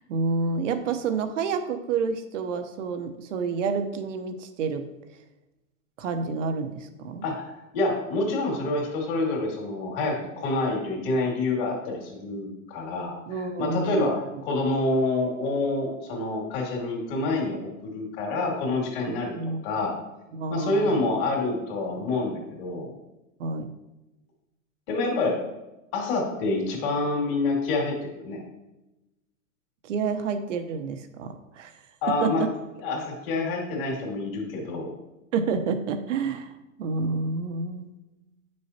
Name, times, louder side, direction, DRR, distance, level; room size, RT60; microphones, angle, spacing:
voice 1, 0.0-4.9 6.0-7.2 13.3-14.1 19.1-19.6 20.3-21.0 23.4-23.7 29.8-31.7 32.2-32.5 35.3-37.9, right 4 dB, 60° right, 9 dB, 1.0 m, -29 dB
voice 2, 7.2-13.2 13.6-19.4 19.6-19.9 20.5-22.9 24.9-25.4 25.9-28.4 32.0-32.4 32.8-34.9, left 2 dB, 40° left, -1 dB, 2.6 m, -27 dB
9.1 x 6.4 x 2.9 m, 0.99 s
hypercardioid pair, 150°, 42 cm